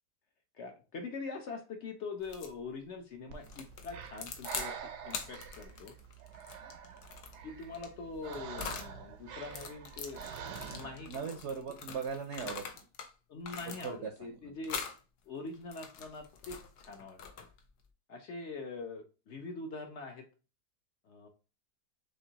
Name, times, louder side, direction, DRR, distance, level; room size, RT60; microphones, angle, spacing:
voice 1, 0.5-4.8 5.0-5.9 7.4-10.2 10.7-11.4 13.3-14.8 15.3-17.5 18.1-20.3 21.0-21.3, left 4 dB, 60° left, 5 dB, 0.8 m, -43 dB
sound 1, 2.2-2.6 3.4-4.7 5.1-8.9 9.4-13.1 13.4-14.2 14.6-15.0 15.5-17.7, left 6 dB, 80° left, 1.3 m, -44 dB
Breathing, 3.3-11.2, right 7 dB, 90° right, 1.2 m, -46 dB
voice 2, 11.1-12.7 13.8-14.5, right 6 dB, 65° right, 5 dB, 0.7 m, -39 dB
6.5 x 2.7 x 2.8 m, 0.33 s
omnidirectional pair, 1.7 m